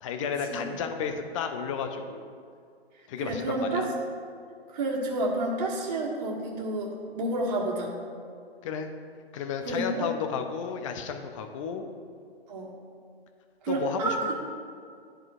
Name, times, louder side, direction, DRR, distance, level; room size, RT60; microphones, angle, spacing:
voice 1, 0.0-2.4 3.1-3.9 8.6-8.9 9.3-11.9 13.7-14.3, left 6 dB, 30° left, 6 dB, 0.6 m, -32 dB
voice 2, 3.2-3.9 4.7-8.0 9.6-10.1 12.5-12.7 13.6-14.3, right 2 dB, 40° right, -4 dB, 1.7 m, -30 dB
12.0 x 4.5 x 2.5 m, 2.3 s
hypercardioid pair, 135°, 32 cm